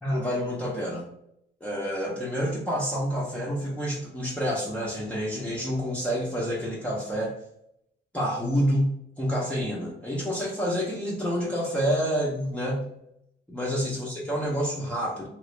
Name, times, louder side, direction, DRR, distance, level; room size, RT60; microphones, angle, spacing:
voice 1, 0.0-1.1 1.6-7.4 8.1-12.9 13.5-15.3, equal, 5° left, -6 dB, 1.0 m, -28 dB
3.0 x 2.8 x 3.2 m, 0.76 s
cardioid pair, 90°, 20 cm